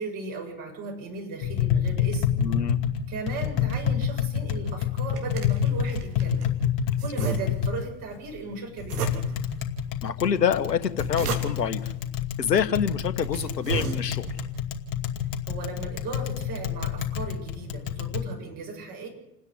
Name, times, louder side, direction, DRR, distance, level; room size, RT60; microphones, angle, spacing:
voice 1, 0.0-2.4 3.1-6.5 7.0-9.2 15.4-19.1, right 4 dB, 40° right, 0 dB, 7.6 m, -37 dB
Tap, 1.4-18.2, left 8 dB, 40° left, 2.6 m, -28 dB
voice 2, 2.4-2.8 7.2-7.3 10.0-11.9 12.4-14.3, left 8 dB, 75° left, 11 dB, 1.4 m, -26 dB
sound 1, 4.8-6.5 7.0-7.9 8.8-9.6 10.7-11.8 12.6-12.7 13.1-14.4, right 4 dB, 65° right, 3.4 m, -33 dB
28.5 x 9.7 x 9.7 m, 0.90 s
figure-of-eight pair, 85°, 50 cm